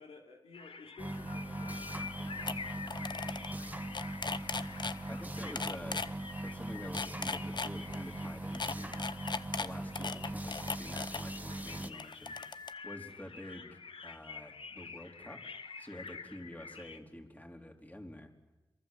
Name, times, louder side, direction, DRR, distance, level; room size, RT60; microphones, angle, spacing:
voice 1, 0.0-3.8, left 4 dB, 90° left, 1 dB, 3.0 m, -56 dB
sound 1, 0.5-17.0, left 5 dB, 70° left, 1.4 m, -48 dB
sound 2, 1.0-11.9, right 1 dB, 15° right, 1.3 m, -40 dB
sound 3, 2.1-2.2 2.5-2.6 2.8-3.5 3.8-5.0 5.6-6.1 6.8-8.0 8.5-11.2 11.8-12.7, left 4 dB, 50° left, 0.9 m, -37 dB
voice 2, 5.1-6.0 6.4-9.0 9.6-12.4 12.8-15.4 15.8-18.3, left 1 dB, 15° left, 3 dB, 3.9 m, -48 dB
27.5 x 23.5 x 7.7 m, 1.1 s
cardioid pair, 50°, 10 cm